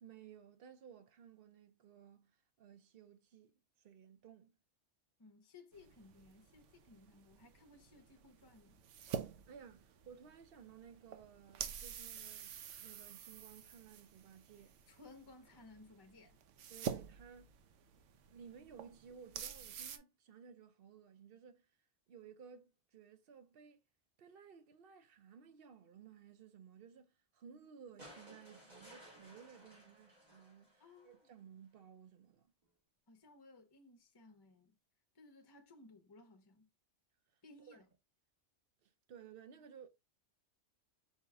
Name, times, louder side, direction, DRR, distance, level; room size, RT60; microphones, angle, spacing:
voice 1, 0.0-4.5 9.2-14.8 16.7-17.6 18.3-21.7 22.1-23.8 24.2-32.5 37.6-37.8 38.8-39.9, right 7 dB, 55° right, 0.8 m, -57 dB
voice 2, 5.2-8.8 14.9-16.4 30.8-31.3 33.1-34.8 35.1-36.7 37.4-37.9, left 3 dB, 25° left, 0.6 m, -60 dB
sound 1, 5.7-20.0, right 8 dB, 80° right, 1.0 m, -48 dB
sound 2, 28.0-31.3 32.6-32.7, right 1 dB, 35° right, 1.9 m, -58 dB
4.5 x 2.9 x 3.5 m
omnidirectional pair, 1.3 m